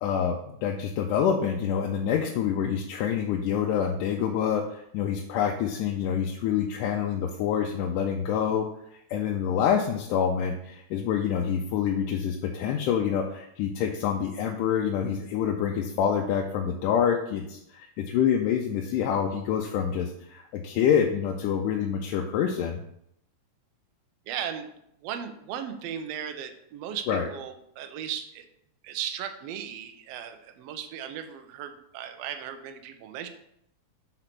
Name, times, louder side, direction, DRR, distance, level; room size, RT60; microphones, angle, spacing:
voice 1, 0.0-22.8 27.1-27.3, left 8 dB, 85° left, 2 dB, 2.2 m, -27 dB
voice 2, 24.3-24.7 25.0-28.5 28.8-33.3, right 9 dB, 85° right, 7 dB, 1.4 m, -36 dB
5.0 x 4.4 x 5.9 m, 0.76 s
omnidirectional pair, 3.7 m